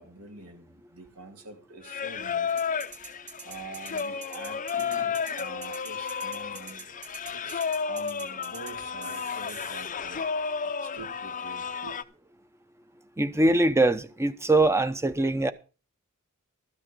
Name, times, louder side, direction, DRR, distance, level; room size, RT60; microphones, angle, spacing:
voice 1, 0.0-2.5 3.4-6.8 7.3-10.3 10.8-12.0, right 3 dB, 75° right, 2.8 m, -45 dB
Singing, 1.8-12.0, left 6 dB, 35° left, 0.7 m, -32 dB
sound 1, 2.5-8.7 9.0-9.9, right 7 dB, 50° right, 3.2 m, -45 dB
voice 2, 13.2-15.5, right 2 dB, 10° right, 0.8 m, -22 dB
13.5 x 6.5 x 6.7 m
head